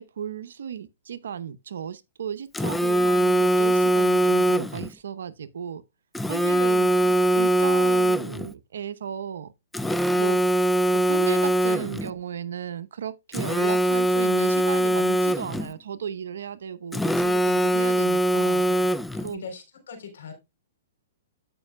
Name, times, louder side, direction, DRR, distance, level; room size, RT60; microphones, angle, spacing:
voice 1, 0.0-5.8 6.3-6.9 7.3-9.5 10.1-10.4 10.9-18.7 19.2-19.5, right 8 dB, 75° right, 0.8 m, -35 dB
Telephone, 2.5-4.9 6.2-8.5 9.7-12.1 13.3-15.7 16.9-19.3, right 1 dB, 5° left, 0.3 m, -22 dB
voice 2, 18.3-20.3, left 6 dB, 75° left, 3.6 m, -42 dB
15.0 x 5.4 x 2.2 m
hypercardioid pair, 135°, 0 cm